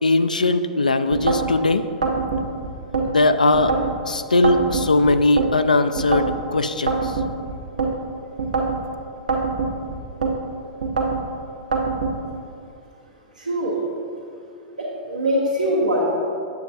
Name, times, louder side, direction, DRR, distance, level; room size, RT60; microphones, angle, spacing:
voice 1, 0.0-1.8 3.0-3.7 4.0-7.1, left 2 dB, 80° left, 10 dB, 0.3 m, -19 dB
sound 1, 1.1-1.5 2.0-3.1 3.5-4.0 4.4-5.5 6.0-6.4 6.9-7.9 8.4-8.8 9.3-10.3 10.8-11.2 11.7-12.1, right 4 dB, 65° right, 0.9 m, -23 dB
voice 2, 13.4-13.8 14.8-16.1, equal, 85° right, -9 dB, 1.3 m, -22 dB
9.2 x 7.1 x 2.7 m, 2.5 s
figure-of-eight pair, 100°, 4 cm